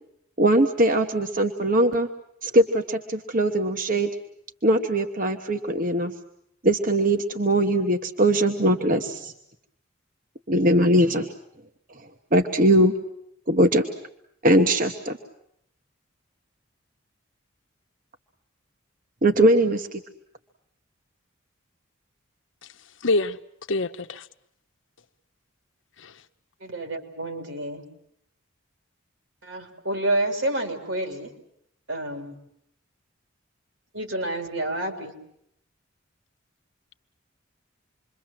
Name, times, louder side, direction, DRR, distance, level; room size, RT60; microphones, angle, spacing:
voice 1, 0.4-2.1 2.4-4.1 4.6-6.1 6.6-9.3 10.5-11.3 12.3-12.9 13.5-13.8 14.4-15.2 19.2-20.0, right 1 dB, 40° right, 1.2 m, -21 dB
voice 2, 23.0-23.4 23.7-24.3 26.0-26.1, left 2 dB, 70° left, 1.0 m, -25 dB
voice 3, 26.6-27.8 29.5-31.3 31.9-32.4 33.9-35.1, right 1 dB, 75° right, 3.9 m, -29 dB
27.5 x 23.0 x 7.6 m
head